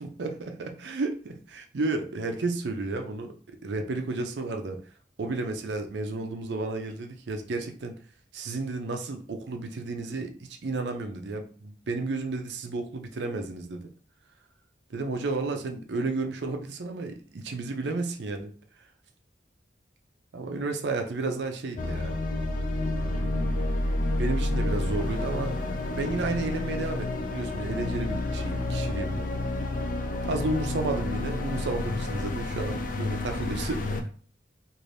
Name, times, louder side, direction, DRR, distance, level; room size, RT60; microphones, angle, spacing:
voice 1, 0.0-3.3 3.6-4.8 5.2-8.0 8.3-13.9 14.9-18.5 20.3-22.2 22.8-23.6 24.2-29.3 30.2-34.0, right 3 dB, 75° right, 6 dB, 0.5 m, -32 dB
sound 1, 21.8-34.0, left 2 dB, 50° left, 0.4 m, -30 dB
2.6 x 2.5 x 3.3 m, 0.42 s
head